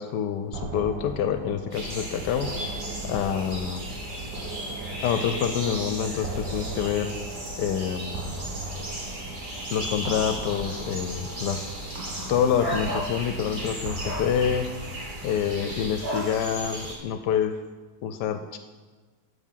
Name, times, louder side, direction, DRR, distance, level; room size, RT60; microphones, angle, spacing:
voice 1, 0.0-2.5 3.0-3.8 5.0-7.1 7.6-8.1 9.7-11.7 12.3-14.7 15.2-17.6 18.0-18.6, left 8 dB, 80° left, 8 dB, 1.2 m, -27 dB
sound 1, 0.5-15.8, right 2 dB, 80° right, 1.7 m, -38 dB
sound 2, 1.7-17.0, right 1 dB, 30° right, 1.6 m, -36 dB
sound 3, 12.6-13.1 14.0-14.3 16.0-16.3, right 1 dB, 55° right, 3.1 m, -31 dB
8.3 x 7.2 x 5.7 m, 1.3 s
omnidirectional pair, 1.9 m